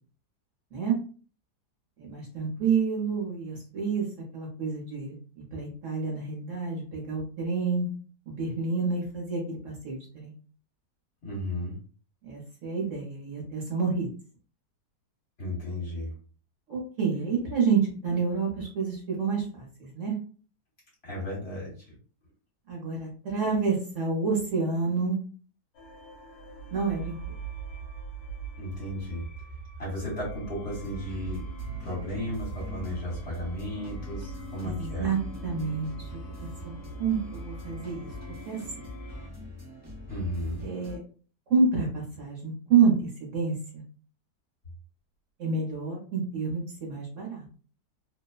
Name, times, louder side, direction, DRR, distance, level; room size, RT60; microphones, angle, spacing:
voice 1, 2.0-4.1 4.3-7.9 8.3-10.3 12.2-14.1 16.7-20.2 22.7-25.2 26.7-27.2 34.6-35.2 35.4-36.1 36.4-38.1 38.4-38.6 40.6-41.0 41.5-43.8 45.4-47.4, right 5 dB, 60° right, -3 dB, 1.1 m, -28 dB
voice 2, 11.2-11.8 15.4-16.1 21.0-22.0 28.5-29.3 29.8-31.5 31.8-35.1 40.1-40.6, left 1 dB, 40° left, -6 dB, 1.4 m, -34 dB
sound 1, 25.7-39.3, right 5 dB, 80° left, 1.2 m, -41 dB
sound 2, 30.7-41.0, left 1 dB, 15° right, 0.7 m, -43 dB
2.9 x 2.1 x 2.3 m, 0.40 s
omnidirectional pair, 1.7 m